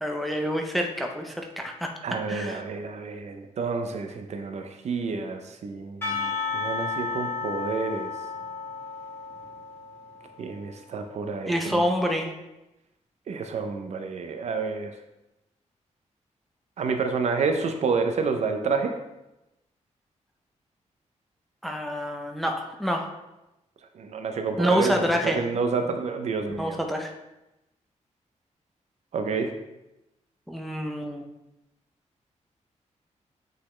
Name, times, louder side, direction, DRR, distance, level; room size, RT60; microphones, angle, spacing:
voice 1, 0.0-1.9 2.3-2.6 11.5-12.3 21.6-23.1 24.6-25.4 26.6-27.1 30.5-31.2, equal, ahead, 2 dB, 0.6 m, -27 dB
voice 2, 2.0-8.1 10.4-11.8 13.3-14.9 16.8-18.9 23.9-26.8 29.1-29.5, right 4 dB, 65° right, 6 dB, 0.6 m, -29 dB
Percussion / Church bell, 6.0-10.4, left 4 dB, 20° left, 1.7 m, -33 dB
8.4 x 4.0 x 3.2 m, 0.95 s
wide cardioid pair, 155°, 13 cm